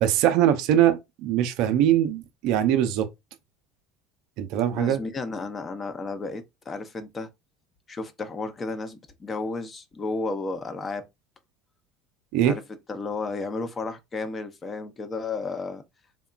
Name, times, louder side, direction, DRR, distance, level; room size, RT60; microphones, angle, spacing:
voice 1, 0.0-3.1 4.4-5.0 12.3-12.5, right 11 dB, 60° right, 0.4 m, -22 dB
voice 2, 4.8-7.3 7.9-11.0 12.4-12.6 12.9-15.8, left 3 dB, 30° left, 0.5 m, -33 dB
2.8 x 2.2 x 2.3 m
hypercardioid pair, 75°, 0 cm